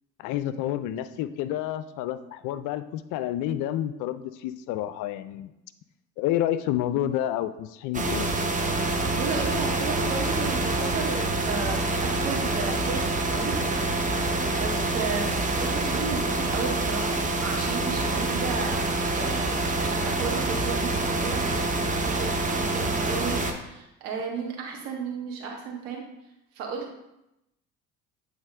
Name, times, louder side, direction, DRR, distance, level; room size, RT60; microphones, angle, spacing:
voice 1, 0.2-5.5 6.2-8.3, left 12 dB, 50° left, 12 dB, 0.4 m, -29 dB
sound 1, 7.9-23.5, right 2 dB, 20° right, 0.8 m, -26 dB
voice 2, 9.2-13.6 14.6-18.8 19.1-26.0 26.5-27.0, right 5 dB, 65° right, 0 dB, 1.6 m, -34 dB
8.2 x 3.4 x 3.6 m, 0.88 s
hypercardioid pair, 65°, 41 cm